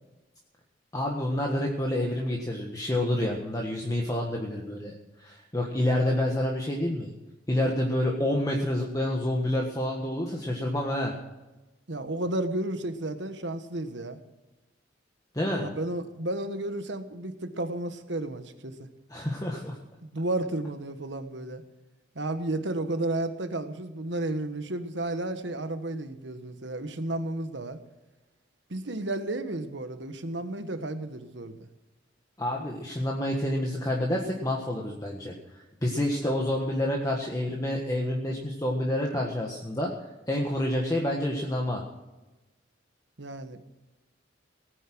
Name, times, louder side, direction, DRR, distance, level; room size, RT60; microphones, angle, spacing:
voice 1, 0.9-7.1 7.5-11.1 15.3-15.7 19.1-19.8 32.4-35.3 35.8-39.9 40.2-41.8, left 1 dB, 20° left, -1 dB, 1.5 m, -28 dB
voice 2, 11.9-14.2 15.6-18.9 20.0-21.6 22.1-27.8 28.7-31.6 43.2-43.6, right 1 dB, 70° right, 9 dB, 1.4 m, -32 dB
18.0 x 9.5 x 6.2 m, 1.1 s
head